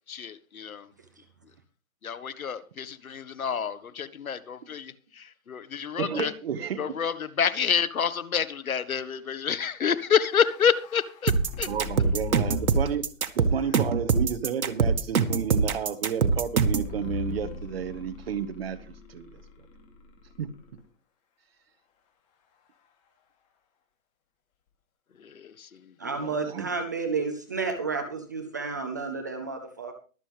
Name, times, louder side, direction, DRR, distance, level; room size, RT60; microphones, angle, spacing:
voice 1, 0.1-0.8 2.0-4.6 5.5-6.3 6.8-11.3 11.6-11.7 25.2-25.7, left 7 dB, 85° left, 14 dB, 1.6 m, -28 dB
voice 2, 6.0-6.9 11.7-13.1 13.3-18.8 19.1-19.3 20.4-20.5 26.2-26.7, right 8 dB, 45° right, 9 dB, 1.6 m, -32 dB
sound 1, 9.8-13.1 13.6-14.1 16.7-20.8, left 6 dB, 20° left, 2.8 m, -40 dB
sound 2, 11.3-16.9, right 5 dB, 85° right, 1.9 m, -23 dB
voice 3, 26.0-29.9, right 4 dB, 15° right, 5 dB, 0.5 m, -31 dB
23.5 x 7.8 x 3.4 m, 0.37 s
hypercardioid pair, 165°, 41 cm